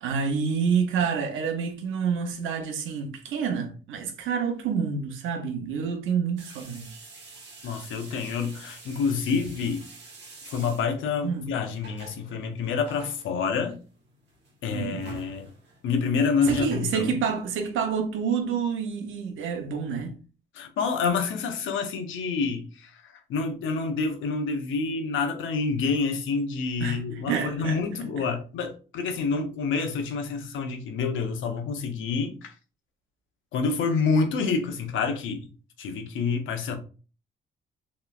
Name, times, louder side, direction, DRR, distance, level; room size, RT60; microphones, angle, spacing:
voice 1, 0.0-7.0 11.2-11.5 14.7-15.0 16.4-20.2 26.8-27.0 27.3-28.2, right 6 dB, 85° right, 0.7 m, -28 dB
sound 1, 6.4-17.5, right 1 dB, 60° right, 1.2 m, -45 dB
voice 2, 7.6-9.8 10.5-13.8 14.6-15.5 15.8-17.2 20.5-32.5 33.5-35.5 35.8-36.8, left 5 dB, 80° left, 0.7 m, -28 dB
3.1 x 2.9 x 2.4 m
cardioid pair, 90°, 20 cm